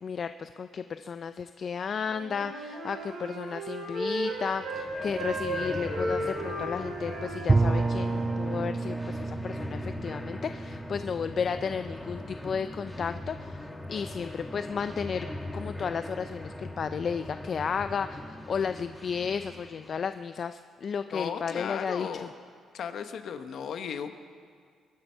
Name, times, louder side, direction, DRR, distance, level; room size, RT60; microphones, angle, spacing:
voice 1, 0.0-13.6 13.9-15.3 15.5-22.3, left 6 dB, 50° left, 10 dB, 0.4 m, -33 dB
Wind instrument woodwind instrument, 2.0-4.9 5.1-8.5, right 1 dB, 85° right, 4.9 m, -35 dB
sound 1, 4.3-20.1, left 1 dB, 10° left, 1.3 m, -40 dB
Bowed string instrument, 7.5-12.3, right 3 dB, 25° right, 0.4 m, -30 dB
voice 2, 21.1-22.3 22.7-24.1, left 7 dB, 65° left, 8 dB, 1.1 m, -35 dB
23.0 x 10.0 x 5.7 m, 2.1 s
cardioid pair, 90°, 0 cm